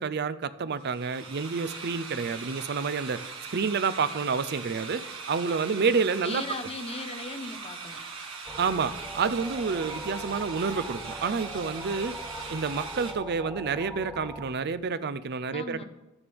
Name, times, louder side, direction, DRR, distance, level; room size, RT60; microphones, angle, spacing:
voice 1, 0.0-6.4 8.6-12.2 12.5-15.8, right 5 dB, 50° right, 14 dB, 0.5 m, -29 dB
sound 1, 0.8-13.1, right 4 dB, 80° right, 1.7 m, -40 dB
voice 2, 5.5-5.9 6.2-8.0 15.5-15.8, left 3 dB, 30° left, 5 dB, 1.0 m, -38 dB
sound 2, 8.5-14.5, equal, 5° right, 0.9 m, -41 dB
14.0 x 12.0 x 3.5 m, 0.98 s
head